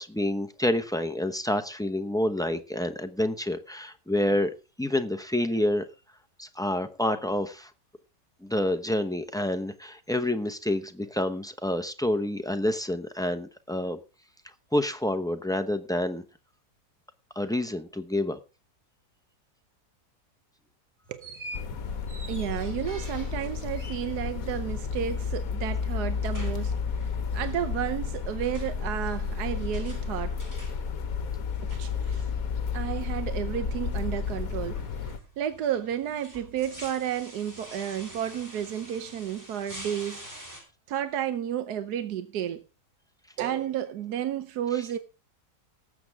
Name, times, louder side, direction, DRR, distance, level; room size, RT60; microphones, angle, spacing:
voice 1, 0.0-4.5 4.8-5.8 6.4-7.7 8.4-14.0 14.7-16.2 17.3-18.4, left 1 dB, 5° left, 0.4 m, -28 dB
sound 1, 21.0-40.6, equal, 10° right, 4.4 m, -47 dB
voice 2, 21.1-21.4 22.3-30.4 31.6-32.3 32.7-35.1 35.4-40.2 40.9-42.6 43.4-45.0, right 10 dB, 75° right, 1.3 m, -32 dB
sound 2, 21.5-35.2, left 5 dB, 60° left, 1.4 m, -32 dB
18.5 x 7.8 x 3.5 m
omnidirectional pair, 1.7 m